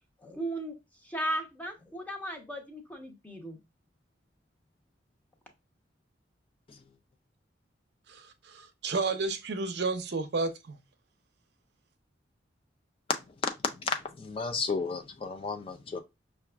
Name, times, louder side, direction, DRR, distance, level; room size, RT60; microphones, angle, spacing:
voice 1, 0.2-0.7 1.0-3.6, right 1 dB, 10° left, 0.8 m, -36 dB
voice 2, 8.1-10.8, right 3 dB, 65° right, 0.6 m, -32 dB
voice 3, 13.8-16.0, left 4 dB, 30° left, 0.4 m, -33 dB
5.7 x 2.4 x 2.3 m
head